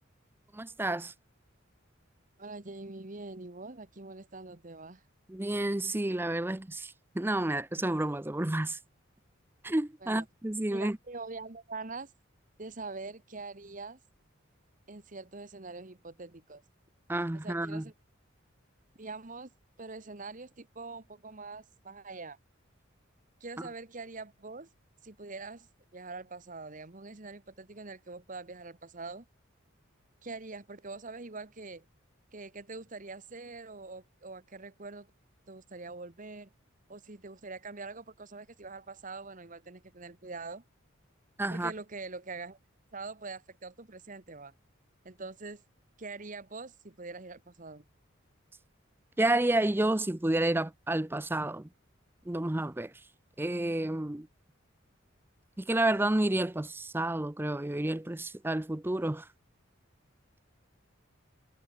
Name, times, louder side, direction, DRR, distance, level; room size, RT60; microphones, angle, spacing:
voice 1, 0.5-1.1 5.3-8.8 9.6-11.0 17.1-17.9 41.4-41.7 49.2-51.7 52.3-53.1 53.4-54.3 55.6-59.3, right 1 dB, 10° right, 0.5 m, -30 dB
voice 2, 2.4-5.0 10.0-10.2 10.7-12.1 12.6-14.0 14.9-16.6 17.4-17.9 19.0-19.5 19.8-22.4 23.4-24.7 25.0-25.7 25.9-29.2 30.2-31.8 32.3-35.1 35.5-36.5 36.9-40.6 41.5-42.6 42.9-44.5 45.0-45.6 46.0-47.8, right 3 dB, 40° right, 1.4 m, -44 dB
head